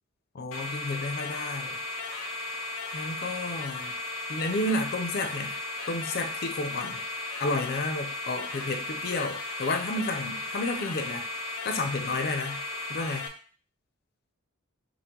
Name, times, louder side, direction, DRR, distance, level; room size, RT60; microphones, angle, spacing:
voice 1, 0.3-1.8 2.9-3.9 4.3-7.0 7.4-11.3 11.6-12.6 12.9-13.3, left 2 dB, 45° left, 5 dB, 0.5 m, -31 dB
sound 1, 0.5-13.3, left 2 dB, 85° left, 0.7 m, -35 dB
4.5 x 2.1 x 3.7 m, 0.41 s
head